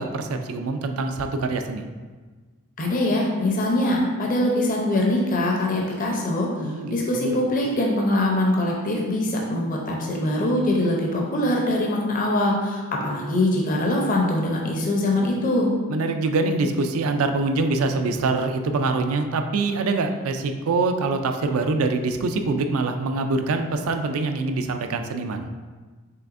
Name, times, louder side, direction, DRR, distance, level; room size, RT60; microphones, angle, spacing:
voice 1, 0.0-1.9 6.6-7.5 15.9-25.5, right 3 dB, 70° right, 6 dB, 0.4 m, -24 dB
voice 2, 2.8-15.7, left 1 dB, 40° left, -1 dB, 0.6 m, -23 dB
5.7 x 3.3 x 2.5 m, 1.4 s
head